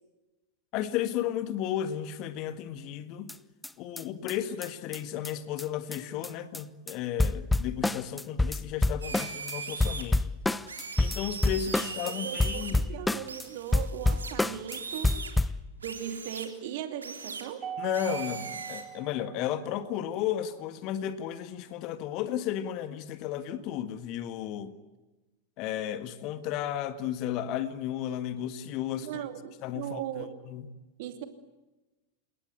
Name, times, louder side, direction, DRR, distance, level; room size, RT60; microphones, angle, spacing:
voice 1, 0.7-3.3 3.8-10.2 11.0-12.8 17.8-24.7 25.6-29.3 29.6-30.7, left 10 dB, 40° left, 1.7 m, -34 dB
sound 1, 3.3-3.4 3.6-3.7 4.0-4.1 4.3-4.4 4.6-4.7 4.9-5.0 5.2-5.3 5.6-5.7 5.9-6.0 6.2-6.6 6.9-7.0 7.2-9.5 9.8-12.1 12.4-13.4 13.7-14.8 15.0-15.6, left 2 dB, 5° left, 0.7 m, -28 dB
sound 2, 9.0-10.0 10.7-12.7 13.2-15.3 15.8-16.5 17.0-17.4 17.9-18.8, right 5 dB, 75° right, 3.5 m, -39 dB
voice 2, 12.0-15.1 15.8-17.6 29.0-30.3 31.0-31.2, right 10 dB, 50° right, 2.7 m, -38 dB
Mallet percussion, 17.6-20.0, right 8 dB, 25° right, 1.7 m, -41 dB
29.5 x 18.0 x 8.2 m
figure-of-eight pair, 90°, 0 cm